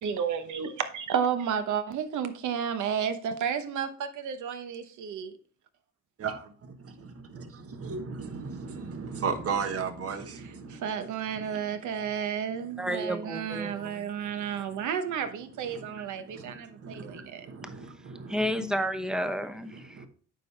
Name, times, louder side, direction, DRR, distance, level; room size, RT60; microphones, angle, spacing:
voice 1, 0.0-5.3 10.7-17.5, right 7 dB, 75° right, 1.0 m, -32 dB
voice 2, 6.2-10.9 11.3-11.9 13.5-14.4 14.7-14.8 15.6-18.6 19.7-20.1, right 5 dB, 50° right, 1.3 m, -37 dB
voice 3, 12.8-14.3 17.6-17.7 18.3-20.0, equal, ahead, 0.8 m, -32 dB
9.1 x 5.6 x 3.3 m
cardioid pair, 90°, 30 cm